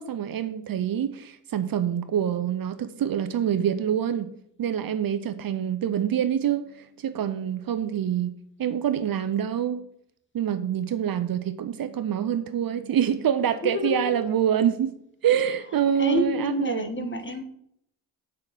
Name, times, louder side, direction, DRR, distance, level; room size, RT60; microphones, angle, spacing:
voice 1, 0.0-4.3 4.6-8.3 8.6-9.8 10.3-14.9 15.2-17.2, right 9 dB, 50° right, 0.8 m, -26 dB
voice 2, 13.6-14.2 16.0-17.4, left 2 dB, 25° left, 1.4 m, -29 dB
6.5 x 5.6 x 6.2 m
supercardioid pair, 55°, 46 cm